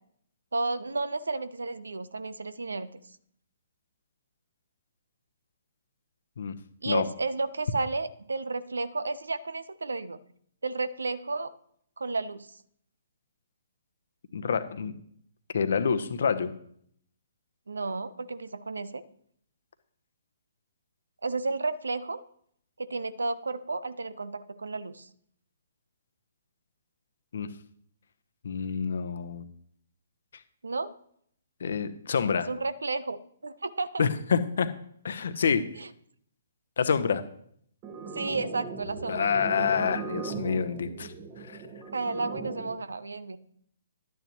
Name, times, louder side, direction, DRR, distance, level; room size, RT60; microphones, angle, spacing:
voice 1, 0.5-3.0 6.8-10.2 10.6-11.5 12.0-12.6 17.7-19.0 21.2-22.2 22.8-25.1 30.6-30.9 32.5-34.1 35.7-35.9 38.1-39.3 41.9-43.4, right 3 dB, 75° right, 15 dB, 0.7 m, -32 dB
voice 2, 14.3-14.9 15.5-16.5 27.3-27.5 28.4-29.4 31.6-32.5 34.0-34.7 35.0-35.6 36.8-37.2 39.1-41.1 41.5-41.6, left 6 dB, 60° left, 11 dB, 0.9 m, -27 dB
sound 1, 37.8-42.8, right 4 dB, 25° right, 1.3 m, -38 dB
11.5 x 9.3 x 3.1 m, 0.66 s
figure-of-eight pair, 130°, 0 cm